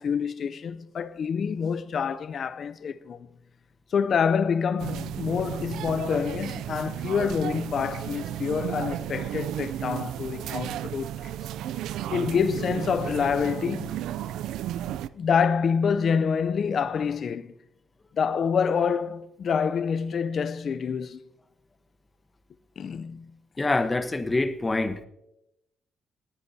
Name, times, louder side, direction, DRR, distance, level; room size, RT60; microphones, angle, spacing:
voice 1, 0.0-3.3 3.9-11.3 12.1-14.0 14.9-17.5 18.1-21.2 22.8-23.4, left 6 dB, 55° left, 0.5 m, -27 dB
sound 1, 4.8-15.1, right 11 dB, 85° right, 0.3 m, -33 dB
voice 2, 23.6-25.0, left 2 dB, 20° left, 1.0 m, -25 dB
18.5 x 9.8 x 2.8 m
cardioid pair, 90°, 0 cm